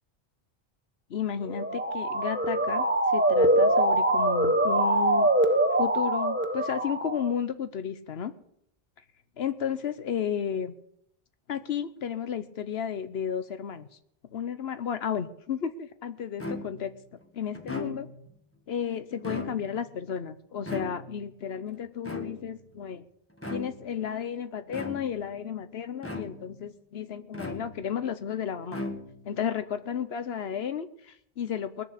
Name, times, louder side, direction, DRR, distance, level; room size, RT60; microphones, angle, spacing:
voice 1, 1.1-5.3 5.8-8.3 9.4-10.7 11.5-13.9 14.3-16.9 17.3-18.1 18.7-23.0 23.5-28.8 29.2-31.8, left 8 dB, 80° left, 11 dB, 1.1 m, -33 dB
Motor vehicle (road) / Siren, 1.5-7.3, right 1 dB, 10° right, 0.8 m, -24 dB
sound 1, 16.4-17.0 17.5-18.3 19.1-19.9 20.7-21.3 22.0-22.7 23.4-23.9 24.7-25.3 26.0-26.6 27.3-28.0 28.7-29.4, left 2 dB, 15° left, 1.5 m, -38 dB
21.0 x 7.1 x 6.5 m, 0.72 s
omnidirectional pair, 1.0 m